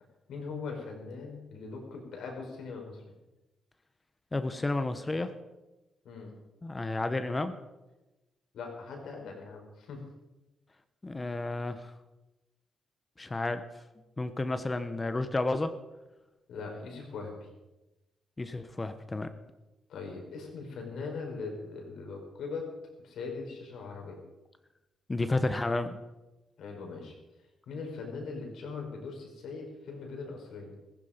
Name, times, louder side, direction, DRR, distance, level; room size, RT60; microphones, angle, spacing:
voice 1, 0.3-3.0 6.0-6.3 8.5-10.0 16.5-17.5 19.9-22.7 23.0-24.2 26.6-27.1 27.7-30.7, left 4 dB, 80° left, 1 dB, 5.0 m, -40 dB
voice 2, 4.3-5.3 6.6-7.5 11.0-11.9 13.2-13.6 14.2-15.7 18.4-19.3 25.1-26.0, left 2 dB, 20° left, 10 dB, 1.1 m, -31 dB
15.5 x 15.5 x 5.2 m, 1.0 s
cardioid pair, 95°, 0 cm